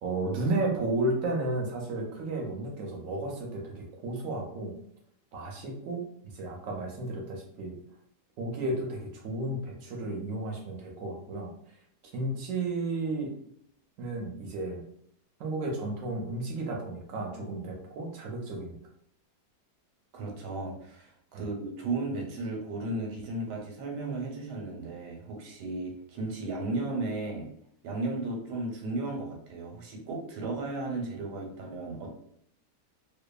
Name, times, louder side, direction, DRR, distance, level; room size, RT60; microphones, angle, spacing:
voice 1, 0.0-4.7 5.3-7.7 8.4-11.5 12.1-13.3 14.0-14.8 15.4-18.8 21.3-21.4, right 2 dB, 70° right, 0 dB, 0.8 m, -33 dB
voice 2, 20.1-27.5 27.8-32.1, right 2 dB, 90° right, 0 dB, 1.2 m, -35 dB
2.8 x 2.2 x 2.2 m, 0.68 s
omnidirectional pair, 1.8 m